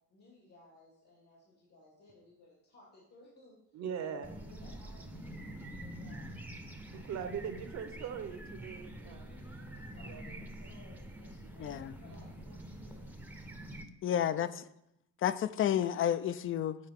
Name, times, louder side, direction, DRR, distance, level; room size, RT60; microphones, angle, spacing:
voice 1, 0.1-3.8 4.1-6.4 6.9-7.1 9.0-13.4, left 2 dB, 65° left, -4 dB, 2.1 m, -60 dB
voice 2, 3.7-4.4 6.9-9.2 10.1-10.2 10.6-10.7 11.6-11.8, right 7 dB, 65° right, 8 dB, 0.9 m, -40 dB
sound 1, 4.2-13.9, right 1 dB, 5° right, 0.6 m, -46 dB
voice 3, 11.6-11.9 14.0-14.5 15.2-16.8, left 10 dB, 45° left, 15 dB, 0.4 m, -30 dB
7.6 x 4.3 x 3.6 m, 0.80 s
cardioid pair, 90°, 30 cm